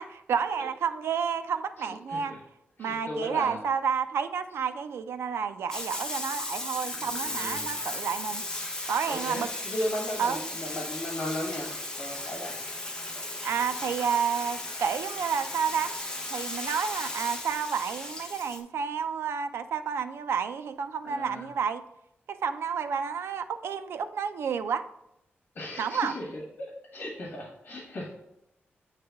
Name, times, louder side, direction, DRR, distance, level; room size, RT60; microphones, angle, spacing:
voice 1, 0.0-2.3 2.8-8.4 8.9-9.5 10.2-10.4 13.4-15.9 16.3-21.8 22.4-24.8 25.8-26.1, right 7 dB, 85° right, 11 dB, 0.4 m, -30 dB
voice 2, 1.8-2.4 2.8-3.6 7.0-7.7 9.1-11.7 12.0-12.6 21.0-21.5 25.5-28.1, left 1 dB, 45° left, -1 dB, 1.4 m, -36 dB
Bathtub (filling or washing), 5.7-18.6, left 2 dB, 15° left, 0.8 m, -36 dB
8.7 x 3.2 x 3.5 m, 0.83 s
wide cardioid pair, 150°, 4 cm